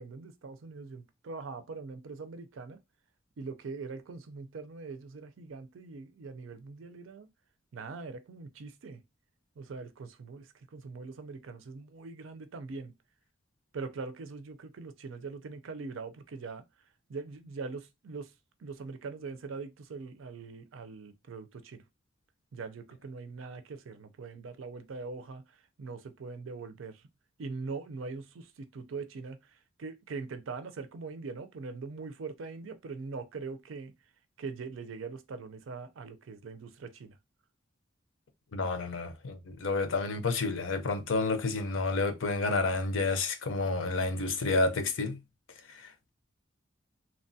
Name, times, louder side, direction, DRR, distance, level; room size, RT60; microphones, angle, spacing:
voice 1, 0.0-2.8 3.4-7.3 7.7-9.0 9.6-12.9 13.7-16.6 17.1-18.3 18.6-21.8 22.5-25.4 25.8-27.0 27.4-29.4 29.8-33.9 34.4-37.2, right 4 dB, 90° right, 0.5 m, -42 dB
voice 2, 38.5-45.2 45.7-46.1, left 3 dB, 80° left, 0.5 m, -30 dB
2.9 x 2.2 x 2.6 m
head